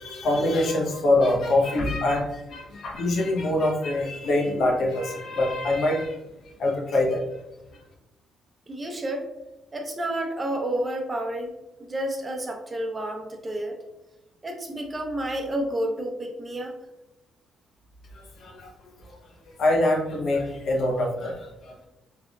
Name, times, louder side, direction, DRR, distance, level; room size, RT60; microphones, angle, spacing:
voice 1, 0.0-6.2 6.6-7.2 18.1-18.7 19.0-19.2 19.6-21.9, left 2 dB, 65° left, 1 dB, 1.0 m, -24 dB
voice 2, 8.7-9.3 9.7-11.5 11.9-13.8 14.4-16.7, right 1 dB, 25° right, 3 dB, 0.8 m, -30 dB
4.5 x 3.5 x 2.3 m, 0.97 s
cardioid pair, 90°, 0 cm